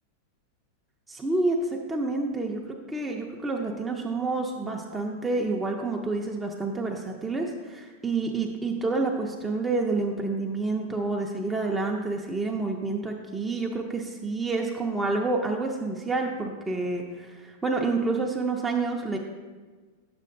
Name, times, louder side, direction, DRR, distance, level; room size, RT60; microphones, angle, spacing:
voice 1, 1.1-19.2, right 3 dB, 10° right, 0 dB, 0.5 m, -28 dB
9.3 x 7.5 x 2.6 m, 1.4 s
supercardioid pair, 145°, 0 cm